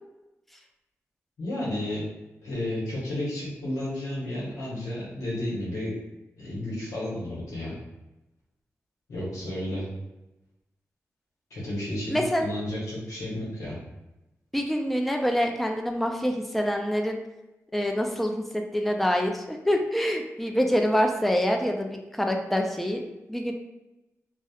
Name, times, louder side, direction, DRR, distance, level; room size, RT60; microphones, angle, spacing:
voice 1, 1.4-2.0 2.4-5.9 6.4-7.8 9.1-9.9 11.5-13.8, left 1 dB, 85° left, -7 dB, 0.9 m, -32 dB
voice 2, 12.1-12.5 14.5-17.2 17.7-23.0 23.3-23.5, equal, 5° left, 3 dB, 0.3 m, -26 dB
2.8 x 2.0 x 2.3 m, 0.99 s
cardioid pair, 70°, 6 cm